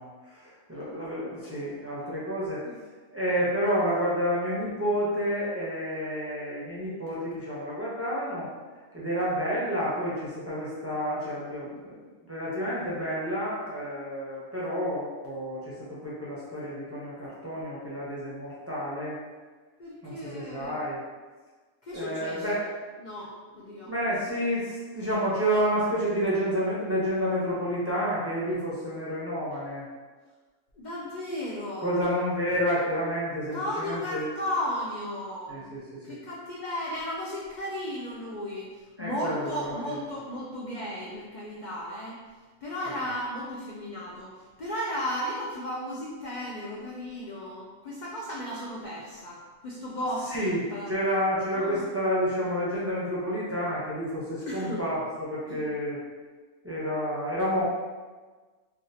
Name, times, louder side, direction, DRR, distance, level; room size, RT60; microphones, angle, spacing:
voice 1, 0.0-2.6 3.1-8.5 8.9-11.9 12.3-19.2 20.0-21.0 21.9-22.7 23.8-29.8 31.8-34.3 35.5-36.2 39.0-39.9 50.3-50.6 50.9-56.0 56.6-57.6, equal, 20° right, -8 dB, 0.4 m, -30 dB
voice 2, 19.8-20.8 21.8-22.6 23.0-23.9 30.8-32.0 33.5-35.7 36.0-42.2 42.6-50.9 51.5-51.9 54.5-54.8 55.6-55.7, left 1 dB, 85° left, -5 dB, 0.4 m, -35 dB
3.5 x 2.3 x 2.7 m, 1.4 s
omnidirectional pair, 1.4 m